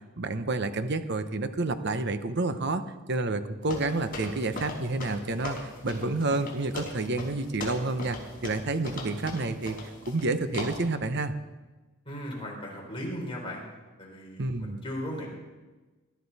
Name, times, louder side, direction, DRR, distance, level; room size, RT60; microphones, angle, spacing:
voice 1, 0.0-2.8 3.1-8.2 8.4-9.8 10.1-11.3 14.4-14.8, right 2 dB, 50° right, 10 dB, 0.9 m, -29 dB
sound 1, 3.7-10.3 10.5-10.9, left 2 dB, 40° left, 4.6 m, -39 dB
voice 2, 12.0-13.6 14.0-15.3, equal, 25° left, -2 dB, 3.9 m, -37 dB
21.0 x 12.5 x 4.2 m, 1.2 s
head